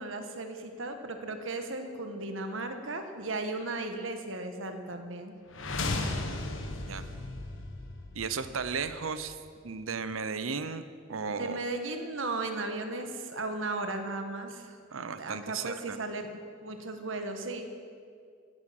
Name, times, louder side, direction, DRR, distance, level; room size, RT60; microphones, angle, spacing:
voice 1, 0.0-5.3 11.3-14.8 15.2-16.3 16.6-17.7, right 2 dB, 70° right, 6 dB, 1.6 m, -36 dB
sound 1, 5.5-9.5, left 2 dB, 70° left, 1.5 m, -36 dB
voice 2, 8.1-9.4 9.6-10.8 11.1-11.6 14.9-16.0, right 5 dB, 85° right, 12 dB, 0.8 m, -34 dB
16.5 x 12.5 x 6.0 m, 2.2 s
head